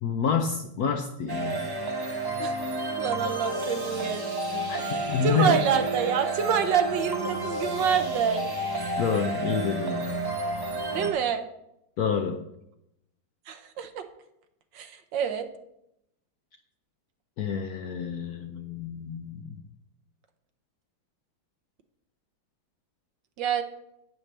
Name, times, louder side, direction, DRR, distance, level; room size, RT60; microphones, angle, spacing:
voice 1, 0.0-1.6 4.7-5.6 9.0-10.2 12.0-12.4 17.4-19.6, left 6 dB, 65° left, 5 dB, 1.0 m, -28 dB
sound 1, 1.3-11.1, right 2 dB, 30° right, 0.4 m, -31 dB
voice 2, 3.0-4.2 4.5-8.4 10.9-11.5 13.5-14.0 14.7-15.5 23.4-23.6, right 8 dB, 70° right, 8 dB, 1.4 m, -27 dB
11.0 x 8.8 x 3.3 m, 0.81 s
omnidirectional pair, 2.2 m